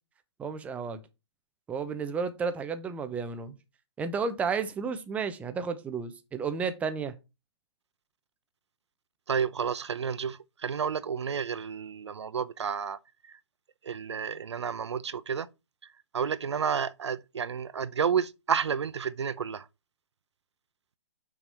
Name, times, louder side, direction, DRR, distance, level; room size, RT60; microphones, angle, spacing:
voice 1, 0.4-1.0 1.7-3.5 4.0-7.1, right 5 dB, 10° right, 0.7 m, -32 dB
voice 2, 9.3-13.0 13.3-13.4 13.8-15.5 16.1-19.7, right 7 dB, 75° right, 0.6 m, -31 dB
6.0 x 4.8 x 5.4 m
hypercardioid pair, 135°, 15 cm